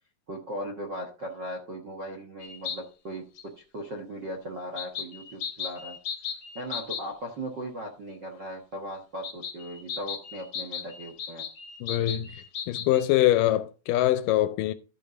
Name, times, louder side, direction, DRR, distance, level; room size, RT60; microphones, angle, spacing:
voice 1, 0.3-3.2 3.6-6.0 6.5-11.4, equal, 50° right, 1.3 m, -38 dB
sound 1, 2.4-2.8 3.4-3.5 4.8-7.0 9.2-13.0, left 7 dB, 60° left, 1.4 m, -36 dB
voice 2, 11.8-14.7, left 14 dB, 80° left, 2.1 m, -24 dB
12.5 x 5.1 x 5.1 m
omnidirectional pair, 4.1 m